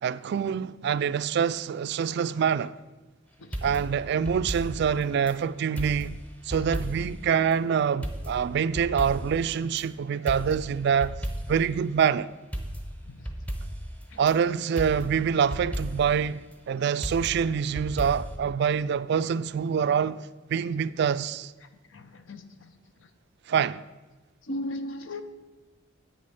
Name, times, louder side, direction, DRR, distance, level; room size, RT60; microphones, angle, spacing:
voice 1, 0.0-2.7 3.6-11.2 11.5-12.3 14.2-21.5 23.5-23.8, right 7 dB, 55° right, 0.3 m, -26 dB
sound 1, 3.5-5.4 5.8-7.2 7.5-7.6 8.0-9.9 10.3-11.7 12.0-12.1 12.5-14.4 14.8-16.2 17.0-18.4, equal, 10° left, 0.9 m, -35 dB
voice 2, 21.9-22.4 24.5-25.2, left 1 dB, 70° left, 0.8 m, -35 dB
8.2 x 6.5 x 6.8 m
head